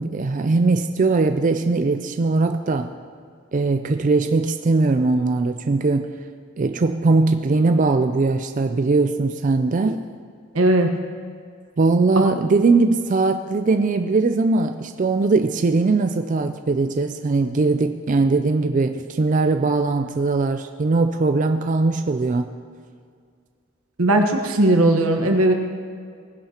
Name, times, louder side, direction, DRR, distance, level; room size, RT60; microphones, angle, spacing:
voice 1, 0.0-2.9 3.5-6.1 6.6-10.0 11.8-22.5, right 3 dB, 40° right, 7 dB, 0.4 m, -20 dB
voice 2, 10.5-10.9 24.0-25.5, right 1 dB, 90° right, 3 dB, 1.3 m, -17 dB
18.5 x 10.5 x 2.9 m, 2.2 s
head